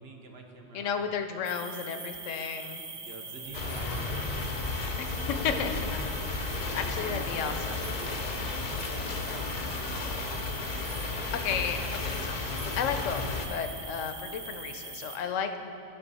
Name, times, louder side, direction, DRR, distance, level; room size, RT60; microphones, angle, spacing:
voice 1, 0.0-1.0 2.9-4.9 6.7-9.6 9.9-10.3 10.6-10.7, right 3 dB, 60° right, 3 dB, 0.9 m, -47 dB
voice 2, 0.7-2.8 5.0-5.1 5.4-5.9 6.7-7.7 11.4-12.4 12.8-15.7, left 6 dB, 80° left, 8 dB, 1.0 m, -33 dB
sound 1, 1.4-15.2, right 4 dB, 40° right, 0.7 m, -42 dB
sound 2, 3.4-6.2 6.6-6.7 7.0-7.1 7.5-7.6, equal, 85° right, 1.9 m, -53 dB
sound 3, 3.5-13.5, left 3 dB, 50° left, 0.5 m, -33 dB
10.5 x 6.1 x 4.1 m, 2.7 s
omnidirectional pair, 1.3 m